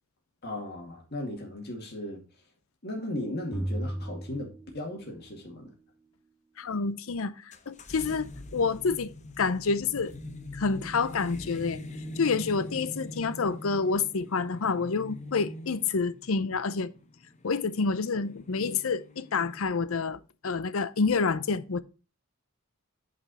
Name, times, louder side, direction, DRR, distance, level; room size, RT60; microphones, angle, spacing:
voice 1, 0.4-2.2 2.8-5.7, left 1 dB, 50° left, 2.4 m, -36 dB
sound 1, 3.5-5.3, right 1 dB, ahead, 2.2 m, -35 dB
voice 2, 6.6-10.1 10.5-11.8 12.2-16.9 17.4-21.8, left 4 dB, 70° left, 0.6 m, -28 dB
sound 2, 7.5-19.7, left 1 dB, 35° left, 0.9 m, -43 dB
8.7 x 5.2 x 4.1 m
head